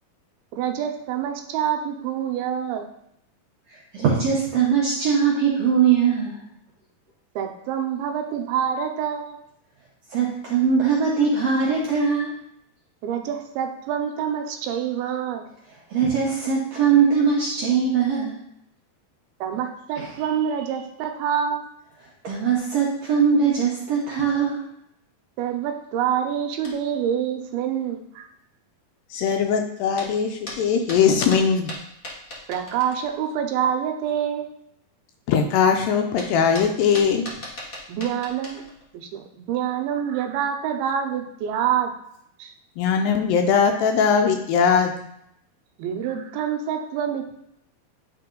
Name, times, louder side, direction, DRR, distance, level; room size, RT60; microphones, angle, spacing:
voice 1, 0.5-2.9 7.4-9.4 13.0-15.5 19.4-21.6 25.4-28.3 32.5-34.5 37.9-38.6 38.9-41.9 42.4-42.5 45.8-47.4, right 8 dB, 85° right, 5 dB, 2.6 m, -26 dB
voice 2, 3.9-6.4 10.1-12.4 15.9-18.4 20.0-20.1 22.2-24.6, right 6 dB, 70° right, -5 dB, 1.6 m, -21 dB
sound 1, 26.6-27.0 29.9-33.4 35.7-35.8 36.0-38.9, left 1 dB, 60° left, 0.7 m, -39 dB
voice 3, 29.1-31.7 35.3-37.3 42.8-44.9, left 6 dB, 80° left, 4 dB, 2.1 m, -20 dB
10.5 x 3.5 x 3.8 m, 0.76 s
omnidirectional pair, 4.4 m